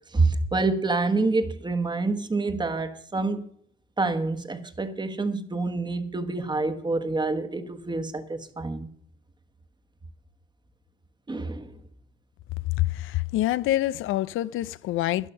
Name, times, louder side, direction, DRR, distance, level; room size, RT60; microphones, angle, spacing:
voice 1, 0.1-3.4 4.0-8.9 11.3-11.8, right 3 dB, 20° right, 1.4 m, -27 dB
voice 2, 12.8-15.3, left 14 dB, 85° left, 0.5 m, -26 dB
12.0 x 11.0 x 5.5 m
cardioid pair, 90°, 20 cm